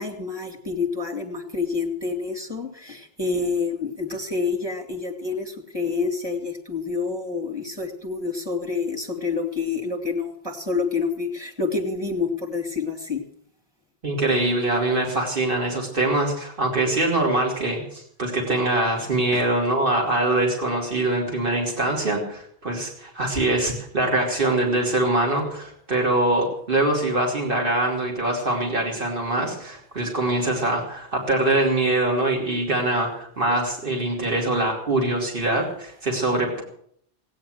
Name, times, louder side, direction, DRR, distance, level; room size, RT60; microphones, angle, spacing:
voice 1, 0.0-13.2 19.3-19.4, left 4 dB, 25° right, 3 dB, 2.5 m, -28 dB
voice 2, 14.0-36.6, right 2 dB, 60° right, 0 dB, 3.0 m, -23 dB
16.5 x 9.4 x 7.8 m, 0.64 s
omnidirectional pair, 1.0 m